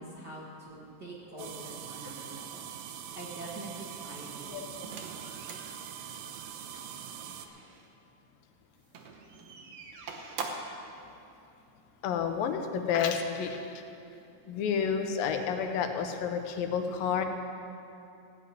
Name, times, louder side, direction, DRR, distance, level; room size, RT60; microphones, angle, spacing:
voice 1, 0.0-2.7 3.1-4.7 7.2-7.4, right 2 dB, 45° right, -5 dB, 1.4 m, -45 dB
sound 1, 1.4-7.5, right 9 dB, 90° right, 2.4 m, -43 dB
sound 2, 4.8-7.9 8.8-10.8, right 4 dB, 65° right, 1.9 m, -43 dB
voice 2, 12.0-13.8 14.5-17.2, left 7 dB, 90° left, 6 dB, 2.6 m, -30 dB
16.0 x 5.8 x 9.4 m, 2.7 s
omnidirectional pair, 3.9 m